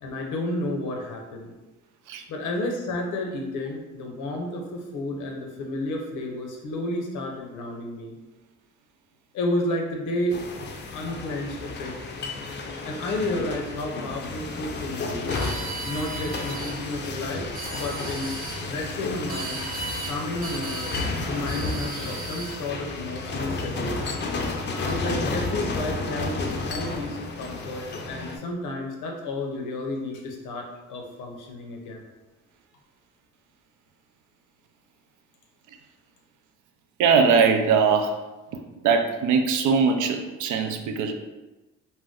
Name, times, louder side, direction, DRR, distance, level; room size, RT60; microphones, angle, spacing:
voice 1, 0.0-1.5 2.3-8.1 9.3-10.4 10.9-11.9 12.8-15.3 15.8-17.5 17.8-19.6 20.1-20.8 21.3-24.2 24.9-32.0, left 1 dB, 85° left, 1 dB, 0.7 m, -31 dB
sound 1, 10.3-28.4, left 3 dB, 35° left, 0.4 m, -32 dB
sound 2, 15.3-16.8 17.4-18.6 19.3-20.2 20.4-21.1 21.5-22.6, right 3 dB, 30° right, 0.5 m, -36 dB
voice 2, 37.0-38.2 38.5-38.6 38.8-41.1, right 5 dB, 80° right, 5 dB, 0.5 m, -21 dB
2.5 x 2.1 x 3.6 m, 1.1 s
cardioid pair, 90°, 30 cm